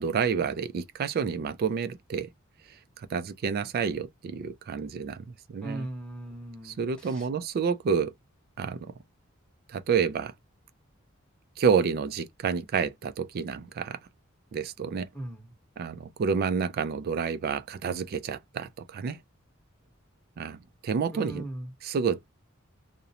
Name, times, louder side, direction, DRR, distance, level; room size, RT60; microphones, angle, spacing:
voice 1, 0.0-2.3 3.0-5.9 6.6-8.1 8.6-8.9 9.7-10.3 11.6-14.0 14.5-15.1 15.8-19.2 20.4-21.4 21.8-22.2, right 6 dB, 50° right, 0.3 m, -29 dB
voice 2, 5.6-7.2 15.1-15.5 21.1-21.7, right 1 dB, 5° left, 0.9 m, -39 dB
2.5 x 2.0 x 2.7 m
head